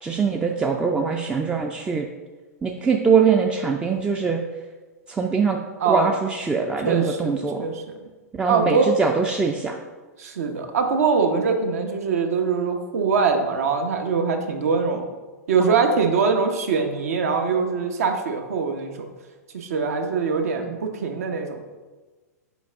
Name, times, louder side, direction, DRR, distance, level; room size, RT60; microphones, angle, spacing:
voice 1, 0.0-2.1 2.6-4.4 5.1-5.6 5.9-7.7 8.3-9.8 15.6-15.8 20.6-20.8, right 5 dB, 10° right, 2 dB, 0.4 m, -23 dB
voice 2, 6.8-7.3 7.6-7.8 8.5-8.9 10.2-15.1 15.5-19.1 19.5-21.6, right 5 dB, 65° right, 5 dB, 0.9 m, -23 dB
6.1 x 4.5 x 3.5 m, 1.3 s
figure-of-eight pair, 105°, 9 cm